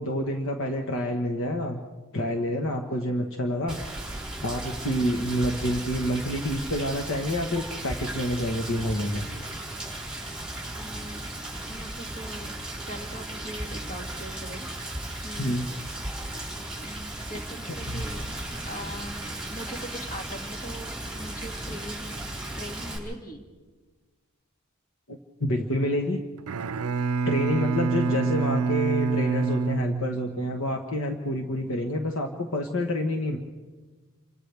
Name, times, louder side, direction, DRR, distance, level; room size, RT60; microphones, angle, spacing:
voice 1, 0.0-1.8 2.1-3.8 4.4-9.2 15.4-15.7 17.9-18.0 25.1-26.2 27.2-33.4, left 1 dB, 65° left, 3 dB, 1.4 m, -28 dB
Rain, 3.7-23.0, right 1 dB, 5° right, 5.9 m, -36 dB
voice 2, 10.7-11.2 11.6-12.5 12.9-15.6 16.8-18.3 18.7-22.2 22.6-23.4 28.0-28.2, equal, 40° left, 2 dB, 2.5 m, -41 dB
Bowed string instrument, 26.4-30.7, right 5 dB, 80° right, 0.5 m, -27 dB
30.0 x 25.5 x 3.5 m, 1.3 s
head